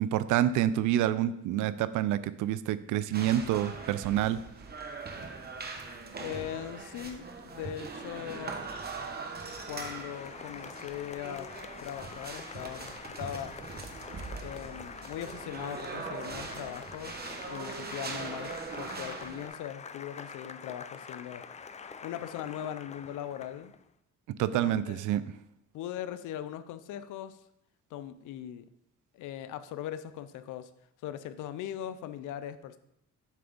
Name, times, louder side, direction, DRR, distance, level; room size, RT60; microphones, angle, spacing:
voice 1, 0.0-4.4 24.4-25.2, right 12 dB, 85° right, 15 dB, 0.4 m, -27 dB
sound 1, 3.1-19.5, right 4 dB, 35° right, 0.9 m, -41 dB
voice 2, 6.2-8.6 9.7-11.5 11.8-12.9 13.2-13.6 14.4-21.4 22.0-23.7 24.5-25.0 25.7-27.4 27.9-28.6 29.1-30.7 31.0-32.8, left 11 dB, 85° left, 12 dB, 0.5 m, -40 dB
Applause, 9.0-23.8, left 6 dB, 25° left, 0.4 m, -46 dB
7.5 x 3.4 x 5.2 m, 0.79 s
cardioid pair, 90°, 30 cm